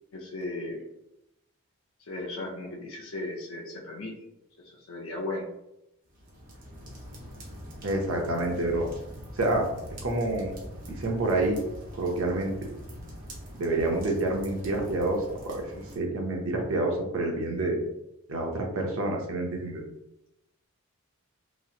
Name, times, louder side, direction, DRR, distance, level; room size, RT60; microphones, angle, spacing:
voice 1, 0.1-0.8 2.1-4.1 4.6-5.5, left 2 dB, 75° left, -3 dB, 0.5 m, -36 dB
sound 1, 6.1-16.0, equal, 40° right, 0.8 m, -43 dB
voice 2, 7.8-8.9 9.4-9.7 10.0-10.5 10.9-11.6 12.0-12.5 13.6-17.8 18.3-19.8, right 2 dB, 70° right, 0 dB, 0.7 m, -28 dB
3.0 x 2.8 x 2.4 m, 0.86 s
head